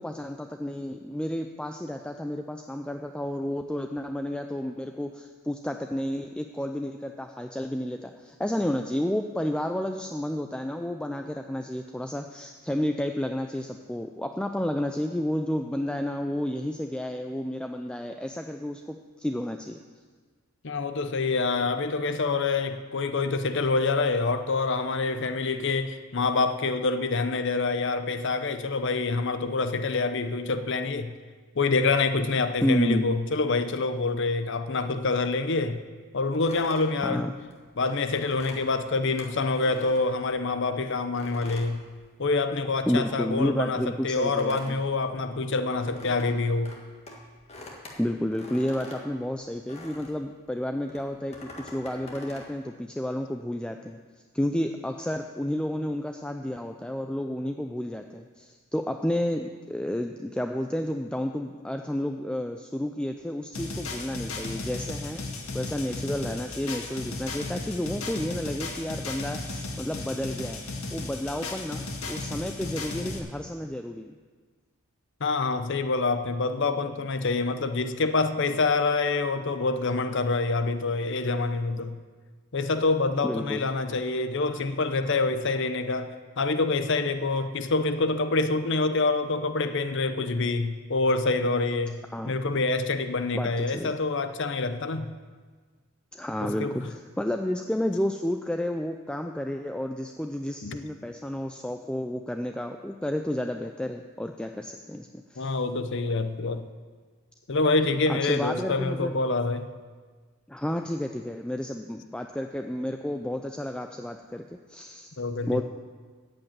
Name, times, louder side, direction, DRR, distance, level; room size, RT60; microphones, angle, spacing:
voice 1, 0.0-19.8 32.6-33.1 37.0-37.3 42.9-44.8 48.0-54.0 54.3-65.2 65.5-70.6 70.9-74.1 83.2-83.6 92.1-92.3 93.3-93.9 96.1-105.5 108.1-109.1 110.5-115.2 115.5-115.6, left 1 dB, 5° left, 5 dB, 0.3 m, -31 dB
voice 2, 20.6-31.1 31.6-35.8 36.1-37.3 37.8-41.9 42.2-46.8 75.2-81.9 82.5-95.1 96.4-96.9 100.6-100.8 105.4-106.7 107.5-109.7 115.2-115.6, left 3 dB, 55° left, 10 dB, 0.7 m, -26 dB
sound 1, 36.3-40.6 41.1-42.6 42.9-50.3 50.9-52.5, left 1 dB, 30° left, 1.6 m, -45 dB
sound 2, 63.5-73.2, left 3 dB, 75° left, 1.9 m, -35 dB
14.0 x 5.3 x 8.9 m, 1.5 s
head